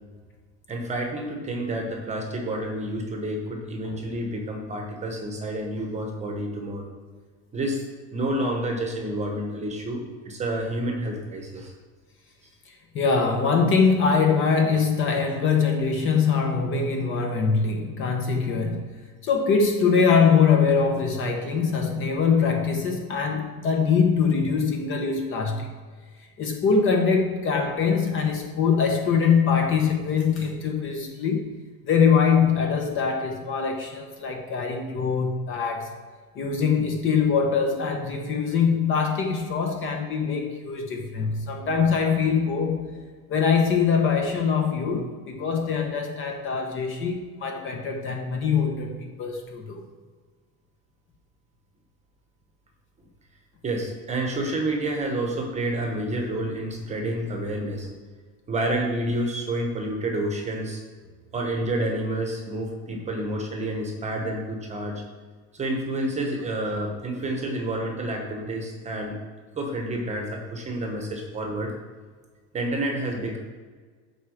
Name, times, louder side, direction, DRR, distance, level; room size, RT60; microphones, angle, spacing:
voice 1, 0.7-6.9 7.5-7.8 8.1-11.7 39.6-39.8 53.6-57.9 58.5-60.8 61.3-65.0 65.5-69.2 69.5-71.7 72.5-73.4, right 1 dB, 15° right, 2 dB, 1.1 m, -29 dB
voice 2, 12.7-19.0 19.2-25.7 26.4-31.6 31.8-35.9 36.4-49.8, left 5 dB, 30° left, 3 dB, 0.9 m, -23 dB
7.9 x 4.8 x 6.4 m, 1.5 s
cardioid pair, 160°, 42 cm